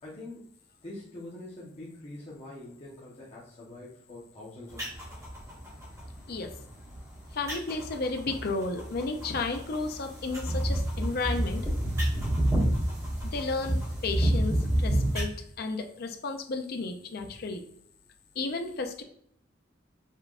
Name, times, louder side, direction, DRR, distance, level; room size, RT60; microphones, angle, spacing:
voice 1, 0.0-0.4 0.8-5.0, left 1 dB, 35° left, -7 dB, 0.9 m, -44 dB
sound 1, 4.7-15.2, right 1 dB, 15° right, 1.5 m, -30 dB
voice 2, 7.3-11.7 13.2-15.3 15.6-17.6 18.4-19.0, left 3 dB, 55° left, 5 dB, 0.5 m, -33 dB
5.5 x 3.4 x 2.4 m, 0.68 s
head